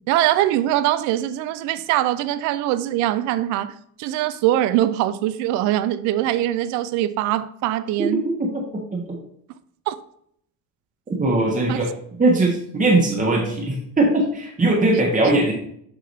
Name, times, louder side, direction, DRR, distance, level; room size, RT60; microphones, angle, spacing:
voice 1, 0.1-8.3 9.9-10.0 11.7-11.8, right 13 dB, 40° right, 0.4 m, -22 dB
voice 2, 8.4-9.2 11.1-15.5, right 2 dB, 15° right, 1.4 m, -20 dB
6.5 x 5.0 x 4.0 m
figure-of-eight pair, 55°, 49 cm